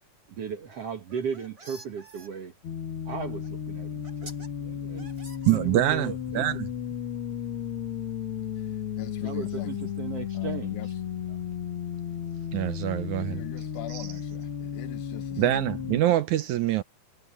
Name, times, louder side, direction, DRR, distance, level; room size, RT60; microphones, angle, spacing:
voice 1, 0.3-2.5 3.1-5.1 5.5-6.5 9.2-10.9 11.2-11.5, right 6 dB, 55° right, 2.1 m, -37 dB
sound 1, 1.0-2.3 3.4-3.5 4.0-4.5 5.0-6.0, right 2 dB, 25° right, 4.9 m, -48 dB
sound 2, 2.6-16.0, left 8 dB, 50° left, 2.0 m, -34 dB
voice 2, 5.5-6.6 12.5-13.5 13.9-14.1 15.4-16.8, right 13 dB, 75° right, 2.0 m, -25 dB
voice 3, 9.0-9.9 10.4-10.9 13.2-15.4, left 16 dB, 75° left, 2.3 m, -40 dB
omnidirectional pair, 3.9 m